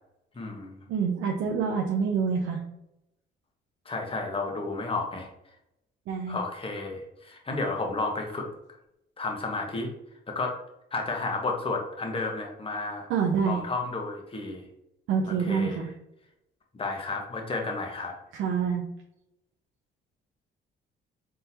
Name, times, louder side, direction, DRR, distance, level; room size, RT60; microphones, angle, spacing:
voice 1, 0.3-0.8 3.8-5.3 6.3-8.5 9.2-9.9 10.3-10.6 10.9-13.1 13.4-14.7 15.4-15.8 16.7-18.1, left 3 dB, 25° left, 1 dB, 1.1 m, -32 dB
voice 2, 0.9-2.6 6.1-6.4 13.1-13.6 15.1-15.9 18.3-18.8, right 6 dB, 85° right, 1 dB, 0.6 m, -26 dB
4.2 x 3.7 x 2.8 m, 0.82 s
cardioid pair, 90°, 20 cm